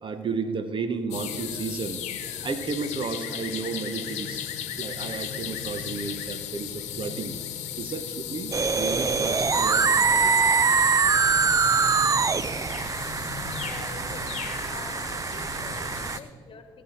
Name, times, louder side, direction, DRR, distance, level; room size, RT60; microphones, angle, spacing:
voice 1, 0.0-4.5 4.8-7.3 7.8-10.3 10.6-10.7, right 4 dB, 45° right, 9 dB, 1.0 m, -33 dB
sound 1, 1.1-16.2, left 9 dB, 70° left, 1.1 m, -36 dB
sound 2, 8.5-16.2, right 5 dB, 30° right, 0.4 m, -24 dB
voice 2, 13.6-14.3 14.7-16.7, left 5 dB, 45° left, 8 dB, 1.3 m, -45 dB
17.0 x 7.6 x 4.4 m, 2.3 s
hypercardioid pair, 55°, 12 cm